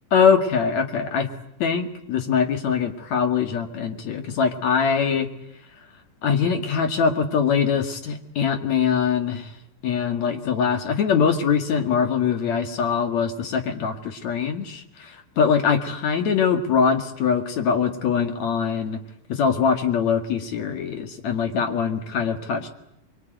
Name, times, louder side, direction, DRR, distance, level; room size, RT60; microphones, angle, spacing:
voice 1, 0.1-1.3 1.6-5.3 6.2-9.5 9.8-19.0 19.3-22.7, left 6 dB, 55° left, 6 dB, 3.1 m, -22 dB
24.0 x 23.5 x 9.2 m, 0.81 s
omnidirectional pair, 4.0 m